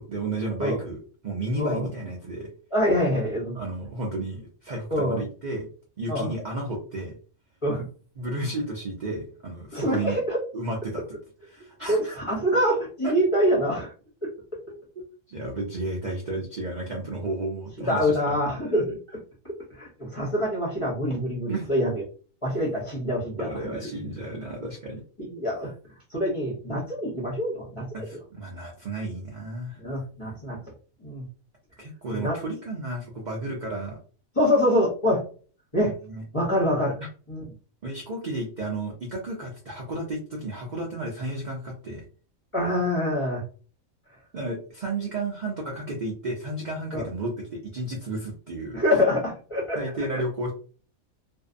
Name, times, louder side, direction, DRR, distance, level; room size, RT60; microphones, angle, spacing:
voice 1, 0.0-2.5 3.5-5.7 6.0-7.1 8.2-10.2 10.5-11.0 11.5-12.2 13.0-13.1 14.7-14.8 15.3-18.4 21.5-21.7 23.4-25.0 27.9-29.8 31.8-34.0 36.1-36.2 37.0-37.1 37.8-42.0 44.3-48.8 49.7-50.5, right 2 dB, 55° right, -1 dB, 0.5 m, -32 dB
voice 2, 1.6-1.9 2.7-3.6 4.9-5.2 6.1-6.3 7.6-7.9 9.7-10.4 11.9-13.9 14.2-14.3 17.9-22.0 22.4-23.5 25.2-25.7 26.1-27.9 29.8-30.6 31.0-31.3 32.1-32.4 34.4-35.2 35.7-35.9 36.3-37.0 37.3-37.4 42.5-43.4 46.9-47.0 48.7-49.8, equal, 30° left, -4 dB, 0.6 m, -25 dB
2.6 x 2.1 x 2.4 m, 0.40 s
omnidirectional pair, 1.5 m